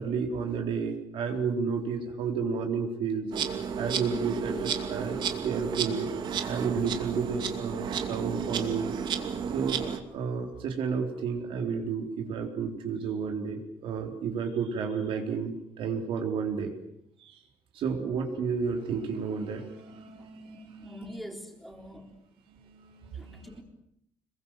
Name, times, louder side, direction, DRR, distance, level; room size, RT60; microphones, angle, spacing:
voice 1, 0.0-3.3 3.8-6.1 6.5-8.9 9.5-16.7 17.2-17.3 17.7-21.1 21.8-21.9 22.5-23.6, right 5 dB, 70° right, 3 dB, 3.9 m, -32 dB
Insect, 3.3-10.0, right 7 dB, 55° right, 2.6 m, -32 dB
voice 2, 20.8-22.2 23.1-23.6, equal, ahead, 3 dB, 3.8 m, -44 dB
27.0 x 22.0 x 7.6 m, 0.75 s
cardioid pair, 155°, 10 cm